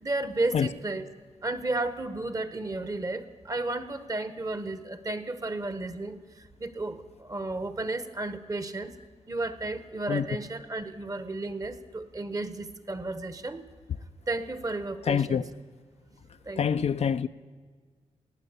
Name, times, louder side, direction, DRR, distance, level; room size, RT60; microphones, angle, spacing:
voice 1, 0.0-1.0 1.4-8.9 9.3-13.6 14.3-15.4 16.4-16.8, right 2 dB, 30° right, 1.1 m, -33 dB
voice 2, 15.1-15.4 16.6-17.3, left 7 dB, 60° left, 0.5 m, -25 dB
18.0 x 8.9 x 8.2 m
cardioid pair, 75°, 12 cm